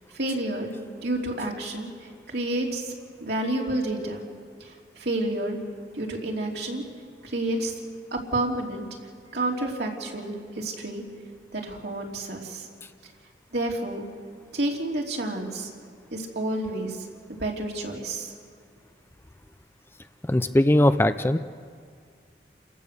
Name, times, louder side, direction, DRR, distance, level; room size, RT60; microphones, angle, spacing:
voice 1, 0.1-0.7 1.0-2.9 3.2-4.2 4.6-5.6 5.9-6.8 7.2-7.7 8.1-8.9 9.3-11.0 11.5-12.7 13.5-14.0 14.5-15.7 16.1-17.0 17.3-18.3, right 1 dB, 70° right, -1 dB, 3.1 m, -29 dB
voice 2, 20.2-21.4, left 1 dB, 15° left, 10 dB, 0.5 m, -20 dB
29.5 x 15.5 x 6.7 m, 2.1 s
head